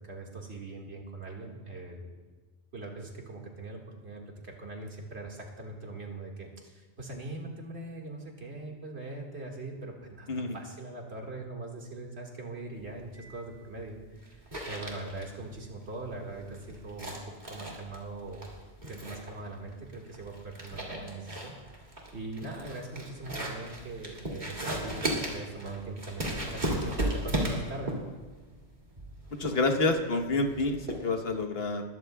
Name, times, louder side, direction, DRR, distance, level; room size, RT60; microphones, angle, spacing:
voice 1, 0.0-2.2 2.7-14.4 14.7-18.5 18.9-21.6 22.1-28.0, right 2 dB, 85° right, 0 dB, 2.2 m, -41 dB
sound 1, 12.8-31.4, right 1 dB, 45° right, 2.6 m, -36 dB
voice 2, 29.4-31.8, left 3 dB, 70° left, 5 dB, 1.4 m, -28 dB
21.0 x 13.5 x 2.3 m, 1.3 s
omnidirectional pair, 1.1 m